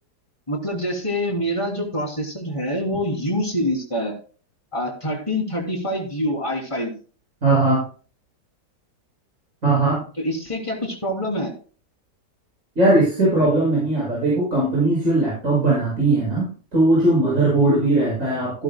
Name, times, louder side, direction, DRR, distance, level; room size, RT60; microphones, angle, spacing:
voice 1, 0.5-4.1 4.7-6.9 10.2-11.5, equal, 15° left, -1 dB, 3.1 m, -25 dB
voice 2, 7.4-7.8 9.6-10.0 12.8-16.5 16.7-18.6, right 2 dB, 45° right, -6 dB, 7.0 m, -19 dB
16.0 x 11.5 x 2.2 m, 0.38 s
omnidirectional pair, 1.8 m